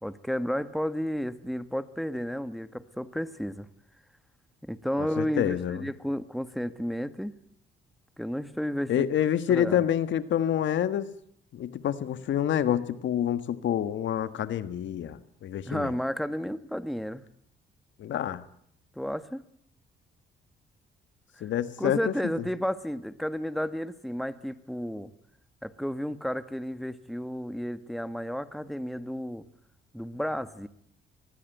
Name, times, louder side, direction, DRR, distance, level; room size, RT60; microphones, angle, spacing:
voice 1, 0.0-3.7 4.6-7.3 8.2-9.0 9.5-9.8 15.6-17.2 18.9-19.4 21.4-21.5 21.8-25.1 25.6-29.4 29.9-30.7, equal, ahead, 12 dB, 1.5 m, -32 dB
voice 2, 5.0-5.8 8.9-11.1 11.5-15.9 18.0-18.4 21.4-22.1, left 10 dB, 70° left, 12 dB, 1.5 m, -27 dB
23.5 x 20.5 x 9.2 m, 0.69 s
cardioid pair, 90°, 20 cm